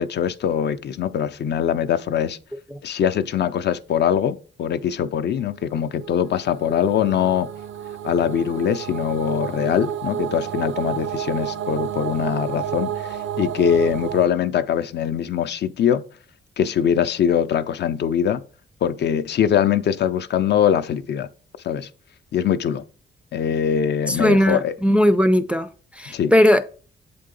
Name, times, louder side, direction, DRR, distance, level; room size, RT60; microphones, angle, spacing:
voice 1, 0.0-2.4 2.8-7.5 8.0-16.0 16.6-18.4 18.8-21.3 21.6-21.9 22.3-22.8 23.3-24.8 26.1-26.3, left 8 dB, 60° left, 0.5 m, -22 dB
sound 1, 5.8-14.3, right 9 dB, 85° right, 0.4 m, -30 dB
voice 2, 24.1-25.7 26.0-26.6, equal, 5° right, 0.4 m, -18 dB
7.4 x 3.8 x 3.8 m
cardioid pair, 135°, 20 cm